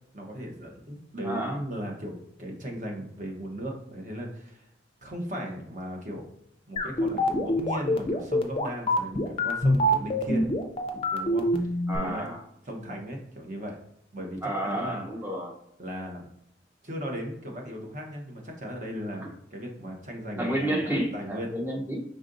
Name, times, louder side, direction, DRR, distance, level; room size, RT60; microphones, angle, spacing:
voice 1, 0.1-4.7 5.0-6.3 6.7-10.5 10.9-12.3 12.6-13.8 14.1-15.0 15.8-16.3 16.8-21.5, equal, 40° right, 1 dB, 1.0 m, -37 dB
voice 2, 1.2-1.6 11.9-12.4 14.4-15.5 20.4-22.0, right 1 dB, 10° right, 0 dB, 0.7 m, -30 dB
sound 1, 6.8-12.0, left 1 dB, 30° left, 0.5 m, -24 dB
5.2 x 3.7 x 2.6 m, 0.75 s
head